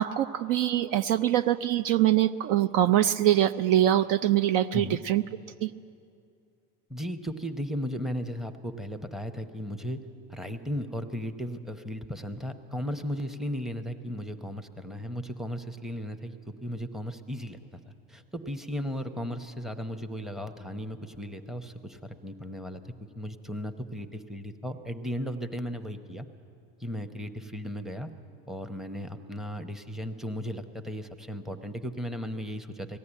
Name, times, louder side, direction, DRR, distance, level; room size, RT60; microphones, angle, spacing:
voice 1, 0.0-5.2 5.6-5.7, right 12 dB, 55° right, 12 dB, 0.5 m, -23 dB
voice 2, 6.9-26.3 26.8-28.1 28.5-33.0, equal, ahead, 8 dB, 0.8 m, -36 dB
19.0 x 14.0 x 9.9 m, 2.5 s
supercardioid pair, 115°, 39 cm